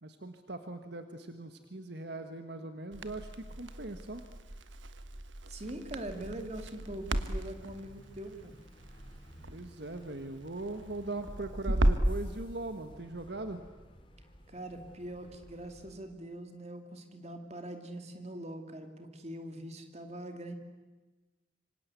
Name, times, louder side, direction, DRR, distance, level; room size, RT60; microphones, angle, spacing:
voice 1, 0.0-4.2 9.5-13.6, right 2 dB, 60° right, 7 dB, 1.6 m, -40 dB
Crackle, 2.9-12.2, right 1 dB, 85° right, 1.5 m, -35 dB
voice 2, 5.5-8.5 14.5-20.5, right 1 dB, 35° right, 6 dB, 2.7 m, -43 dB
sound 1, 5.8-16.0, equal, 30° left, 3.3 m, -56 dB
26.5 x 25.0 x 8.4 m, 1.2 s
head